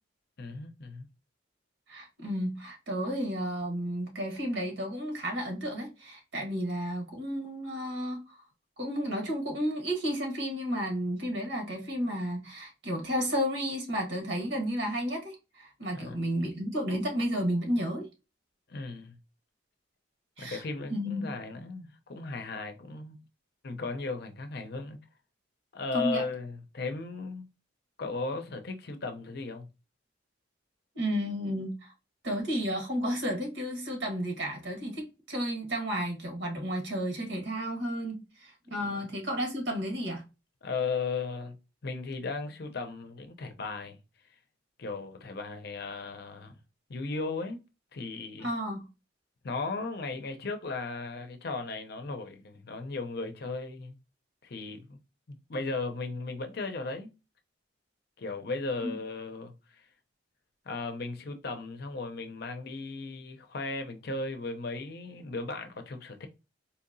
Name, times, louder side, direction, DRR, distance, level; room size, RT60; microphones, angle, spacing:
voice 1, 0.4-1.1 15.9-16.2 18.7-19.2 20.4-23.2 23.6-25.0 25.7-27.5 28.0-29.7 38.8-39.0 40.6-41.6 41.8-44.0 44.8-46.6 46.9-47.6 47.9-48.5 49.4-54.0 54.4-55.0 55.3-57.1 58.2-59.9 60.7-66.3, left 3 dB, 55° left, 0.6 m, -36 dB
voice 2, 1.9-8.2 8.8-18.1 20.4-20.6 20.9-21.3 25.9-26.2 30.9-31.9 32.2-40.2 48.4-48.8 58.8-58.9, equal, 75° right, 1.5 m, -32 dB
4.2 x 2.8 x 2.6 m
head